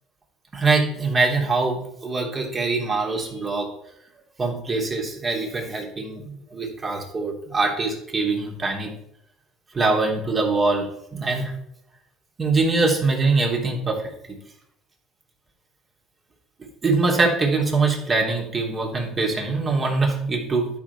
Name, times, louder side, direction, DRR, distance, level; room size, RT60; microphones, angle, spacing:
voice 1, 0.5-3.7 4.4-8.9 9.7-11.5 12.4-14.0 14.3-14.4 16.8-20.7, right 3 dB, 30° right, -1 dB, 3.2 m, -23 dB
11.5 x 5.2 x 4.8 m, 0.76 s
supercardioid pair, 80°, 0 cm